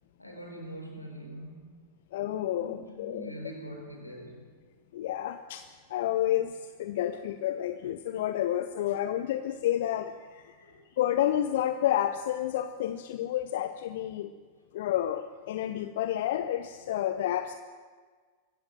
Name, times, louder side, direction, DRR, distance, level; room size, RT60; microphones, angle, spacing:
voice 1, 0.2-1.9 2.5-4.5 10.6-10.9, right 1 dB, 85° left, 3 dB, 4.4 m, -43 dB
voice 2, 2.1-3.3 4.9-5.6 5.9-10.7 11.0-14.3 14.7-17.5, left 12 dB, 55° left, 9 dB, 0.9 m, -30 dB
23.0 x 16.0 x 7.6 m, 1.5 s
figure-of-eight pair, 90°, 0 cm